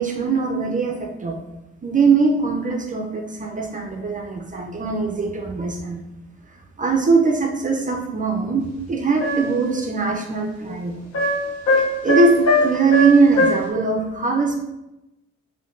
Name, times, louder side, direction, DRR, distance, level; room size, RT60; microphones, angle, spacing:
voice 1, 0.0-1.4 1.8-6.0 6.8-11.0 12.0-14.6, right 4 dB, 25° right, 1 dB, 0.4 m, -21 dB
sound 1, 9.2-9.6 11.1-13.7, left 1 dB, 60° left, 0.7 m, -21 dB
3.3 x 2.7 x 2.5 m, 0.93 s
cardioid pair, 90°, 30 cm